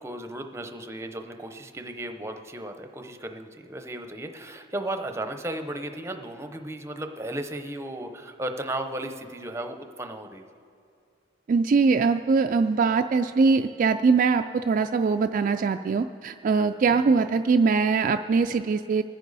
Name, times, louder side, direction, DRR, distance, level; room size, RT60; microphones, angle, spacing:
voice 1, 0.0-10.4, right 1 dB, 15° right, 6 dB, 0.7 m, -35 dB
voice 2, 11.5-19.0, right 4 dB, 45° right, 7 dB, 0.3 m, -22 dB
23.0 x 10.0 x 4.1 m, 2.4 s
head